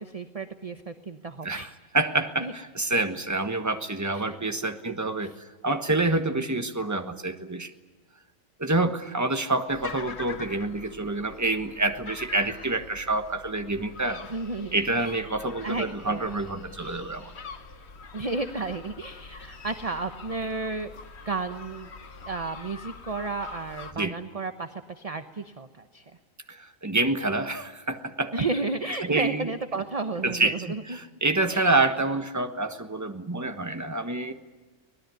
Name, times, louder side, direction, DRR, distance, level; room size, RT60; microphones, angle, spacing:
voice 1, 0.0-1.7 2.4-2.5 4.1-5.3 14.3-14.8 15.6-16.4 18.1-20.9 21.2-21.9 22.3-26.0 28.3-31.0 31.5-31.7, right 3 dB, 30° right, 8 dB, 1.0 m, -33 dB
voice 2, 1.4-7.7 8.6-14.2 14.7-17.3 24.0-24.2 26.5-28.3 29.0-29.5 30.2-34.3, right 2 dB, 15° right, 7 dB, 1.3 m, -27 dB
sound 1, 9.7-23.9, left 4 dB, 55° left, 1.5 m, -44 dB
24.5 x 19.0 x 9.4 m, 1.2 s
omnidirectional pair, 1.4 m